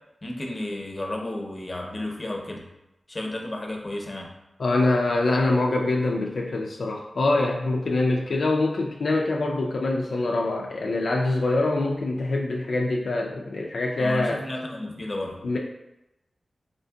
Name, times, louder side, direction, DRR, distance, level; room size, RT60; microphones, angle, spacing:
voice 1, 0.2-2.6 3.1-4.3 14.0-15.4, left 1 dB, 35° left, 0 dB, 0.6 m, -32 dB
voice 2, 4.6-14.4 15.4-15.6, left 2 dB, 80° left, -1 dB, 0.3 m, -24 dB
4.2 x 2.6 x 2.2 m, 0.92 s
wide cardioid pair, 70°, 0 cm